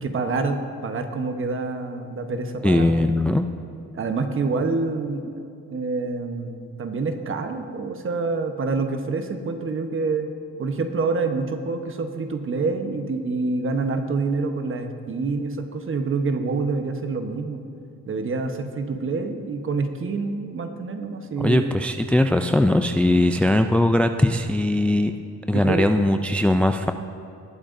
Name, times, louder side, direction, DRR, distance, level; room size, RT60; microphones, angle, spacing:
voice 1, 0.0-3.1 3.9-5.4 5.7-10.3 10.6-17.6 18.1-21.7 25.5-25.9, right 4 dB, 45° right, 6 dB, 1.1 m, -27 dB
voice 2, 2.6-3.5 21.4-25.1 25.5-26.9, left 1 dB, 5° left, 7 dB, 0.3 m, -20 dB
20.0 x 8.7 x 2.6 m, 2.6 s
cardioid pair, 90°, 30 cm